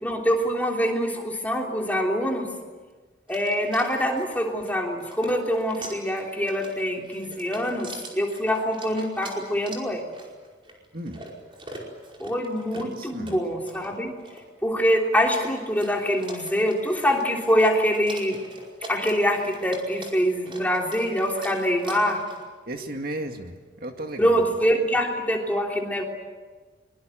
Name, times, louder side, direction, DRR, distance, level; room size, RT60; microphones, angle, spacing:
voice 1, 0.0-2.5 3.3-10.0 12.2-14.2 14.6-18.4 18.9-22.2 24.2-26.0, equal, 10° left, 0 dB, 3.3 m, -24 dB
sound 1, 3.3-22.5, right 2 dB, 25° right, 5.0 m, -43 dB
voice 2, 12.7-13.4 22.7-24.4, right 1 dB, 50° right, 4 dB, 2.2 m, -35 dB
24.0 x 23.5 x 9.2 m, 1.4 s
head